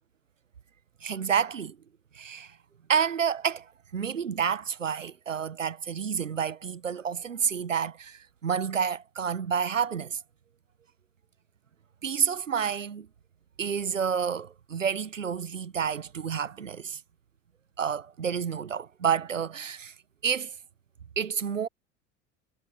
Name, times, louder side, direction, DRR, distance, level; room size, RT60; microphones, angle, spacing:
voice 1, 1.0-1.8 2.1-2.6 2.9-10.2 12.0-13.1 13.6-17.0 17.8-19.9 20.2-20.5 21.2-21.7, right 7 dB, 85° right, 1.1 m, -29 dB
figure-of-eight pair, 70°, 38 cm